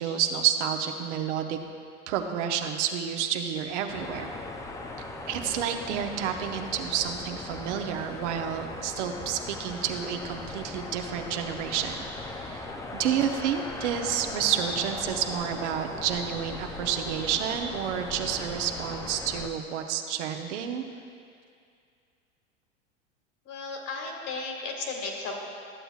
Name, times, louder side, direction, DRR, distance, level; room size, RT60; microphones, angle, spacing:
voice 1, 0.0-1.6 2.1-4.3 5.3-12.1 12.3-12.7 12.9-20.8, right 8 dB, 65° right, 5 dB, 0.8 m, -30 dB
sound 1, 3.9-19.5, left 2 dB, 10° left, 0.3 m, -39 dB
voice 2, 23.5-25.3, left 3 dB, 50° left, 0 dB, 2.0 m, -34 dB
13.5 x 7.8 x 2.4 m, 2.3 s
hypercardioid pair, 95°, 38 cm